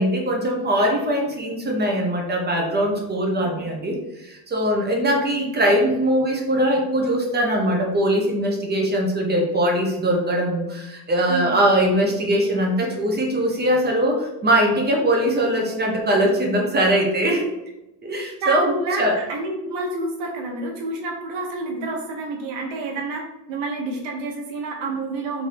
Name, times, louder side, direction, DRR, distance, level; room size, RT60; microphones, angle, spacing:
voice 1, 0.0-17.5 18.0-19.2, right 1 dB, 20° right, 0 dB, 0.5 m, -21 dB
voice 2, 3.4-3.7 5.1-5.5 11.3-11.5 18.4-25.5, right 2 dB, 70° right, 0 dB, 1.1 m, -29 dB
3.3 x 2.6 x 4.4 m, 0.93 s
cardioid pair, 165°, 47 cm